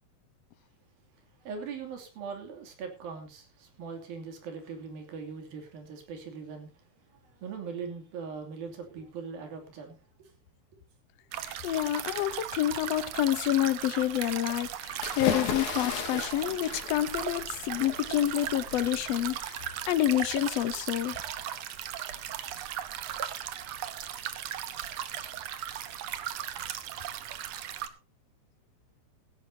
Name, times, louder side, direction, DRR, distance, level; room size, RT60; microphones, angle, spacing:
voice 1, 1.4-6.7 7.4-10.3 11.6-11.8, right 5 dB, 90° right, 4.6 m, -41 dB
sound 1, 11.3-27.9, right 10 dB, 65° right, 1.8 m, -37 dB
voice 2, 11.4-21.2, left 13 dB, 80° left, 1.4 m, -28 dB
Splash Jumping H, 15.0-19.8, left 8 dB, 60° left, 2.9 m, -36 dB
16.0 x 16.0 x 2.8 m
omnidirectional pair, 4.0 m